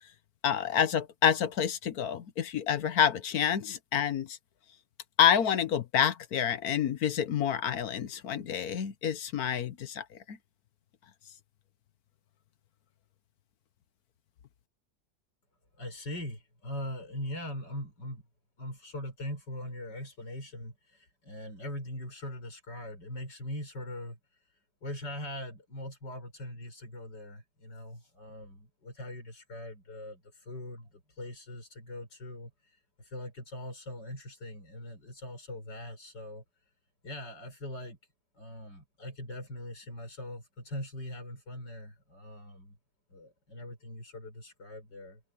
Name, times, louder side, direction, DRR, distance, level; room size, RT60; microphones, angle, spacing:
voice 1, 0.4-4.4 5.2-10.4, left 9 dB, 65° left, 1.4 m, -28 dB
voice 2, 15.8-18.2 18.6-36.4 37.0-38.0 38.3-42.8 43.1-45.2, left 1 dB, 85° left, 7.3 m, -41 dB
omnidirectional pair, 1.8 m